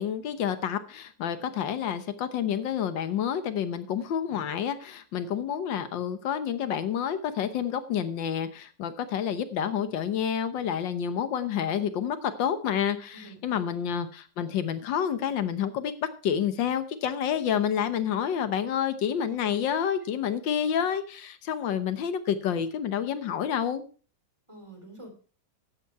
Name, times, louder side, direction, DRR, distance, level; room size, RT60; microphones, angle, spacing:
voice 1, 0.0-23.8, left 8 dB, 80° left, 11 dB, 1.7 m, -29 dB
voice 2, 13.1-13.8 19.8-19.9 24.5-25.1, right 2 dB, 15° right, 3 dB, 3.6 m, -47 dB
13.0 x 9.0 x 4.7 m, 0.38 s
omnidirectional pair, 2.0 m